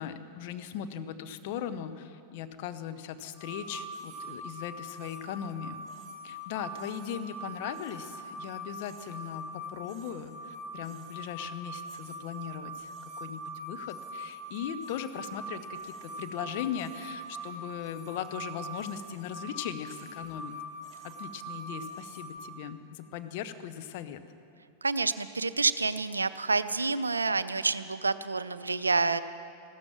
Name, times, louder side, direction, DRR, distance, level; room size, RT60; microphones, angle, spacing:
voice 1, 0.0-5.8 6.2-12.9 13.2-20.5 21.0-24.2, left 9 dB, 50° left, 9 dB, 0.8 m, -39 dB
sound 1, 3.3-22.4, right 1 dB, 10° right, 2.8 m, -42 dB
voice 2, 24.8-29.2, right 3 dB, 80° right, 14 dB, 0.5 m, -28 dB
15.0 x 13.0 x 7.1 m, 2.5 s
figure-of-eight pair, 90°, 0 cm